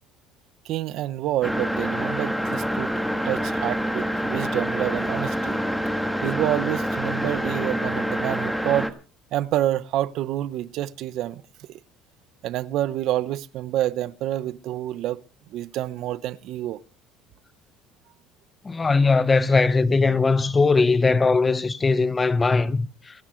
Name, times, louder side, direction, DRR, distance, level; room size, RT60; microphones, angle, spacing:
voice 1, 0.6-2.9 3.2-5.6 6.2-8.9 9.3-11.4 12.4-15.2 15.5-16.8, right 13 dB, 60° right, 0.7 m, -28 dB
sound 1, 1.4-8.9, equal, ahead, 1.3 m, -26 dB
voice 2, 18.6-22.9, left 4 dB, 20° left, 0.6 m, -20 dB
27.0 x 10.0 x 3.1 m
cardioid pair, 140°, 0 cm